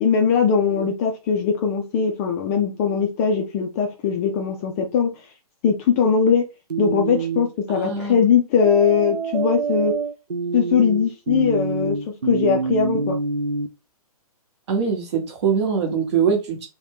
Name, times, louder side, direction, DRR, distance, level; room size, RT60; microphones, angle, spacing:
voice 1, 0.0-5.1 5.6-6.4 6.8-9.9 10.5-12.0 12.2-13.2, left 6 dB, 25° left, 0.4 m, -20 dB
sound 1, 6.7-7.5 8.6-13.7, right 4 dB, 90° right, 0.5 m, -26 dB
voice 2, 7.7-8.3 14.7-16.7, right 6 dB, 45° right, 1.0 m, -23 dB
2.6 x 2.2 x 3.3 m
figure-of-eight pair, 125°, 20 cm